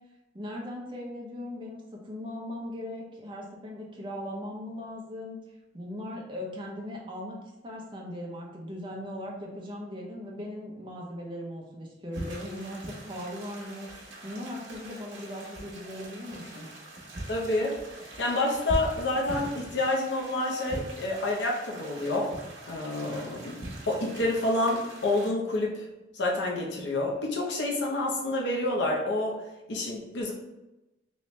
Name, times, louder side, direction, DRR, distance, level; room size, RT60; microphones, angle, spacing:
voice 1, 0.3-5.4 5.7-7.4 7.6-13.9 14.2-16.7, left 1 dB, 30° right, -1 dB, 0.7 m, -39 dB
sound 1, 12.1-25.3, right 1 dB, 80° right, 0.8 m, -41 dB
voice 2, 17.3-17.9 18.2-22.3 22.7-25.8 26.1-29.4 29.7-30.3, left 2 dB, 70° left, -1 dB, 0.7 m, -28 dB
3.1 x 3.0 x 3.1 m, 0.98 s
head